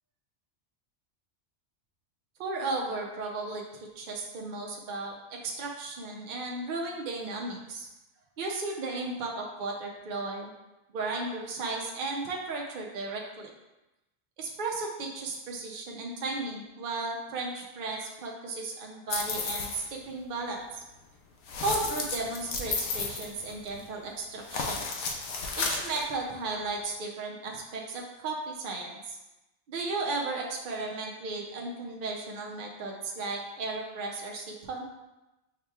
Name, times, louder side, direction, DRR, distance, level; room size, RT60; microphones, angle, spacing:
voice 1, 2.4-7.9 8.4-10.5 10.9-13.5 14.4-20.7 21.6-24.8 25.6-29.2 29.7-34.8, right 3 dB, 55° right, -1 dB, 0.7 m, -35 dB
sound 1, 19.1-19.9 21.5-23.9 24.4-26.1, left 4 dB, 85° left, 0.9 m, -33 dB
5.7 x 3.0 x 2.3 m, 1.0 s
omnidirectional pair, 1.2 m